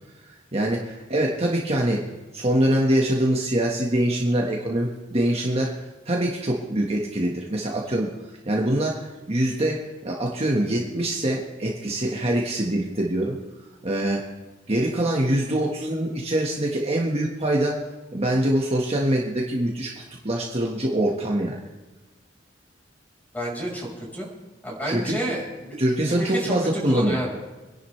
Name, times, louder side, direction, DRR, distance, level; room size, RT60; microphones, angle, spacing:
voice 1, 0.5-8.1 8.4-13.4 13.8-14.3 14.7-17.9 18.1-21.6 24.8-25.2 25.8-27.2, right 1 dB, 35° right, -1 dB, 1.5 m, -24 dB
voice 2, 23.3-24.3 24.6-25.8 26.0-26.5 26.9-27.3, right 1 dB, 10° left, -4 dB, 5.0 m, -30 dB
26.5 x 11.0 x 3.3 m, 1.2 s
head